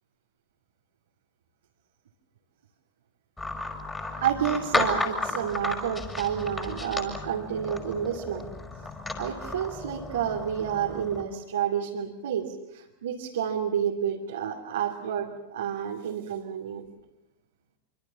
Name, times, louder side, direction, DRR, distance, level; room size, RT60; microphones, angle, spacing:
sound 1, 3.4-11.3, left 2 dB, 10° left, 5.2 m, -33 dB
voice 1, 4.1-8.5 9.2-16.9, right 9 dB, 60° right, -1 dB, 2.8 m, -30 dB
26.0 x 26.0 x 7.1 m, 0.89 s
figure-of-eight pair, 90°, 0 cm